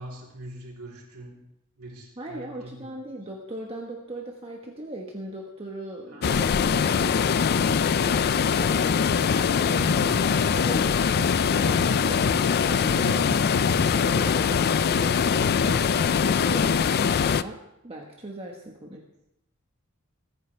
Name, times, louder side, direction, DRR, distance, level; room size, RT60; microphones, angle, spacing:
voice 1, 0.0-1.4 1.8-3.0 6.1-6.8 12.7-13.5, right 1 dB, 85° right, -3 dB, 3.5 m, -42 dB
voice 2, 2.2-13.3 13.7-16.8 17.2-19.0, right 1 dB, 25° right, -1 dB, 1.3 m, -39 dB
sound 1, 6.2-17.4, left 6 dB, 45° left, 0.4 m, -22 dB
sound 2, 8.9-9.0 9.3-9.5 9.8-10.9 11.2-11.4 11.6-12.8 13.1-13.3 13.5-14.7 14.9-15.2 15.4-16.0, left 2 dB, 85° left, 0.8 m, -32 dB
21.5 x 9.2 x 3.3 m, 0.84 s
head